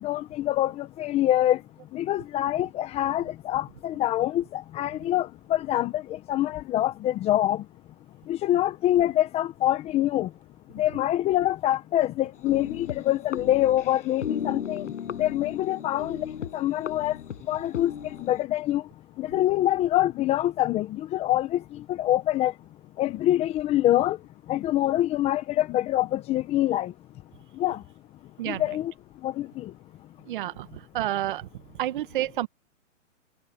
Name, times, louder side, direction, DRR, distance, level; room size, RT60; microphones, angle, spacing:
voice 1, 0.0-1.6 1.9-7.6 8.3-10.3 10.7-14.9 15.2-16.2 16.5-17.2 17.5-17.9 18.2-18.8 19.2-22.5 23.0-24.2 24.5-26.9 27.6-27.8 28.5-28.9 29.2-29.7, left 13 dB, 15° left, 1.2 m, -25 dB
sound 1, 12.3-18.4, left 8 dB, 70° left, 7.8 m, -36 dB
voice 2, 30.3-30.7 30.9-31.5 31.8-32.5, right 14 dB, 40° right, 1.4 m, -29 dB
hypercardioid pair, 155°, 38 cm